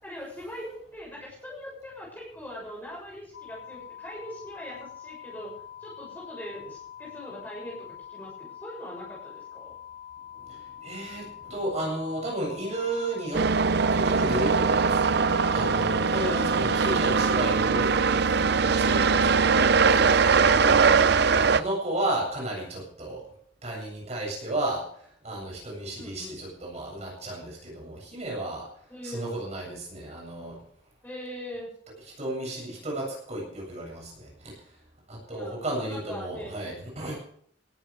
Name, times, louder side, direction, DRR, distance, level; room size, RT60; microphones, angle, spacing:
voice 1, 0.0-5.5 5.8-9.7 16.1-16.7 20.6-20.8 26.0-26.4 28.9-29.4 31.0-31.7 35.3-36.7, equal, 10° left, -4 dB, 7.1 m, -41 dB
sound 1, 3.3-15.9, left 10 dB, 75° left, 2.9 m, -45 dB
voice 2, 10.4-13.5 13.9-19.7 20.5-21.1 21.5-23.2 23.6-24.9 25.2-28.7 29.0-30.6 32.2-34.6 35.1-37.2, right 1 dB, 35° right, -2 dB, 7.7 m, -33 dB
sound 2, 13.3-21.6, right 5 dB, 55° right, 0.6 m, -21 dB
19.5 x 14.5 x 3.5 m, 0.62 s
head